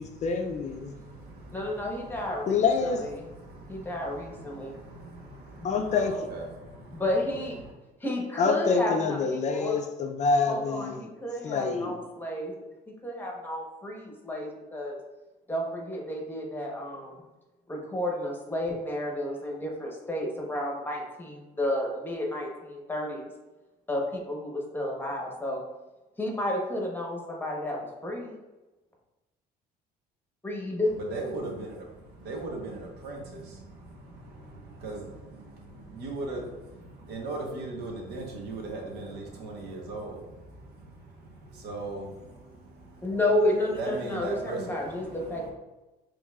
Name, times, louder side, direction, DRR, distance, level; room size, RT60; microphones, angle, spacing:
voice 1, 0.0-0.9 2.5-3.0 5.6-6.1 8.4-11.1 11.4-12.0, left 5 dB, 45° left, 5 dB, 0.4 m, -26 dB
voice 2, 0.8-2.4 3.4-6.8 30.9-43.2 43.8-45.5, right 2 dB, 75° right, 0 dB, 1.1 m, -39 dB
voice 3, 1.5-2.6 3.0-3.1 3.7-4.8 5.6-5.7 6.9-7.6 8.0-9.8 10.5-12.6 13.0-15.0 15.5-17.2 17.7-23.3 23.9-25.6 26.2-28.4 30.4-30.9 43.0-45.5, left 1 dB, 10° left, 0 dB, 1.0 m, -31 dB
6.3 x 3.1 x 2.4 m, 1.1 s
cardioid pair, 110°, 17 cm